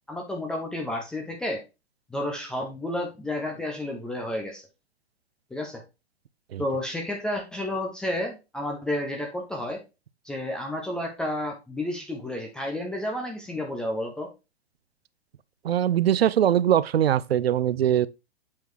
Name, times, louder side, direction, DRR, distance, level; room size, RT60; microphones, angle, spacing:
voice 1, 0.1-1.6 2.1-4.6 5.5-5.8 6.6-9.8 10.2-14.3, left 1 dB, 5° left, 0.3 m, -31 dB
voice 2, 15.6-18.1, right 10 dB, 65° right, 0.5 m, -22 dB
7.4 x 4.4 x 3.0 m
figure-of-eight pair, 105°, 33 cm